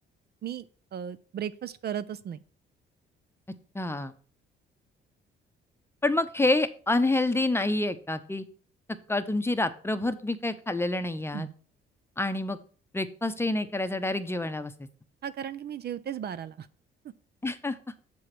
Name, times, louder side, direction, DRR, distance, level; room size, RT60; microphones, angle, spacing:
voice 1, 0.9-2.4 11.3-11.5 15.2-16.7, right 9 dB, 55° right, 15 dB, 0.5 m, -35 dB
voice 2, 3.7-4.1 6.0-8.5 9.1-11.5 12.2-12.6 12.9-14.9 17.4-17.8, left 2 dB, 10° left, 10 dB, 0.7 m, -27 dB
6.9 x 4.7 x 5.9 m, 0.41 s
cardioid pair, 90°, 20 cm